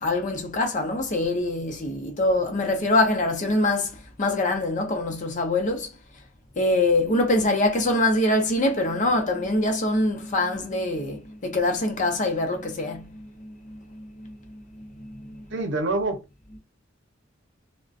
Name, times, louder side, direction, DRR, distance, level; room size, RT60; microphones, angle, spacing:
voice 1, 0.0-5.9 6.6-15.7 16.5-16.6, left 2 dB, 40° left, 0.6 m, -25 dB
voice 2, 15.5-16.2, right 2 dB, 65° right, 0.7 m, -25 dB
2.4 x 2.1 x 2.4 m
head